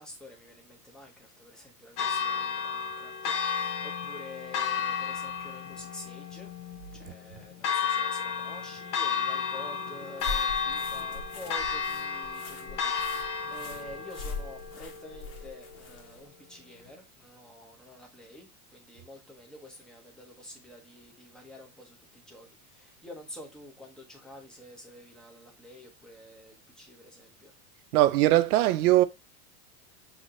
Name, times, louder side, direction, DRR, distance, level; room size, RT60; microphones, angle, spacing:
voice 1, 0.0-6.5 6.9-27.5, left 1 dB, ahead, 0.8 m, -48 dB
Church bell, 2.0-16.0, left 6 dB, 45° left, 0.8 m, -33 dB
sound 1, 10.2-16.3, left 4 dB, 70° left, 1.4 m, -42 dB
voice 2, 27.9-29.0, right 15 dB, 75° right, 0.7 m, -21 dB
6.4 x 2.9 x 2.5 m
supercardioid pair, 150°, 44 cm